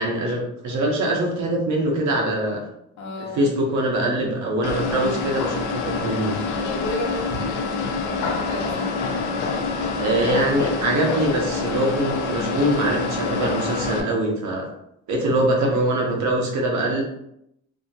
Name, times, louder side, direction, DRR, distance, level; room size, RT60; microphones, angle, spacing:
voice 1, 0.0-2.6 3.2-6.4 10.0-14.7 15.1-17.0, right 1 dB, 70° right, 0 dB, 0.8 m, -23 dB
voice 2, 3.0-3.4 6.7-7.6 8.0-8.9, left 1 dB, 65° left, -2 dB, 0.9 m, -32 dB
sound 1, 4.6-14.0, left 4 dB, 80° left, 0.5 m, -26 dB
2.7 x 2.6 x 2.3 m, 0.78 s
cardioid pair, 90°, 30 cm